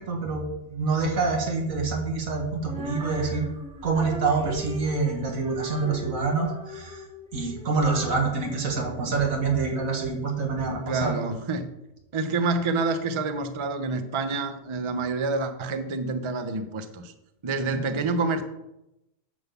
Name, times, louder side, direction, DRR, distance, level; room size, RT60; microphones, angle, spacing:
voice 1, 0.1-0.4 0.7-3.5 3.8-7.0 7.3-11.2 17.7-17.8, right 4 dB, 85° right, 1 dB, 1.9 m, -26 dB
Female singing, 2.6-9.7, equal, 5° right, 1.6 m, -40 dB
voice 2, 10.7-11.7 12.1-17.1 17.4-18.4, right 3 dB, 35° right, 8 dB, 0.5 m, -28 dB
9.4 x 3.9 x 6.9 m, 0.89 s
omnidirectional pair, 1.4 m